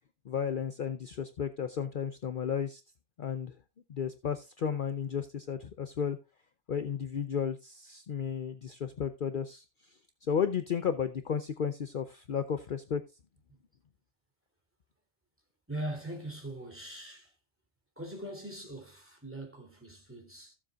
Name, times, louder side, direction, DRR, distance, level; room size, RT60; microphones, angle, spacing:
voice 1, 0.3-2.8 3.2-3.5 3.9-6.2 6.7-9.6 10.3-13.0, left 7 dB, 50° left, 0.8 m, -33 dB
voice 2, 15.7-17.3 18.0-20.5, right 1 dB, 10° right, 3.2 m, -41 dB
15.5 x 7.3 x 2.4 m
omnidirectional pair, 1.2 m